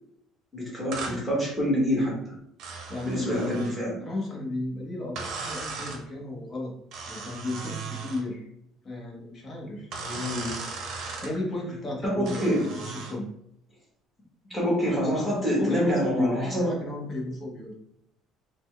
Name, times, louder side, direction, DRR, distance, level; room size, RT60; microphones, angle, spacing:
voice 1, 0.5-2.3 3.1-4.0 10.1-10.5 12.0-12.7 14.5-16.7, equal, ahead, -4 dB, 1.3 m, -26 dB
sound 1, 0.9-1.2 2.6-3.8 5.2-6.0 6.9-8.2 9.9-11.3 12.3-13.2, right 4 dB, 55° right, 0.7 m, -37 dB
voice 2, 2.9-3.3 4.0-6.7 7.0-8.5 8.8-9.9 11.2-13.3 15.6-17.7, left 2 dB, 25° left, -2 dB, 0.9 m, -33 dB
4.2 x 2.1 x 3.2 m, 0.76 s
cardioid pair, 160°, 0 cm